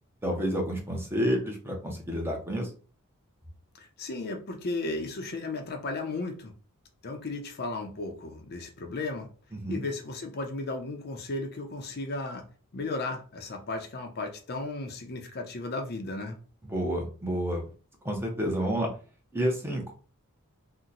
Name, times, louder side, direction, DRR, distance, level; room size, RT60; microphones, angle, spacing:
voice 1, 0.2-2.7 9.5-9.8 16.7-17.6 18.0-18.9 19.3-19.9, equal, 10° right, 0 dB, 0.7 m, -29 dB
voice 2, 3.8-6.5 7.0-9.3 9.7-12.5 12.7-16.4, left 2 dB, 45° left, 3 dB, 0.6 m, -35 dB
2.8 x 2.1 x 3.8 m, 0.38 s
head